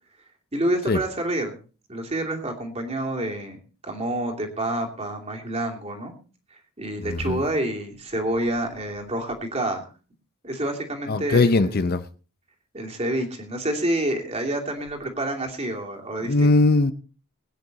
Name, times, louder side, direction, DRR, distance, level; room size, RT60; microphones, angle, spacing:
voice 1, 0.5-1.6 1.9-3.6 3.8-6.1 6.8-9.9 10.4-11.8 12.7-16.5, right 1 dB, 30° right, 2.8 m, -28 dB
voice 2, 7.0-7.4 11.1-12.0 16.2-16.9, left 3 dB, 45° left, 0.6 m, -20 dB
20.5 x 9.7 x 4.0 m
head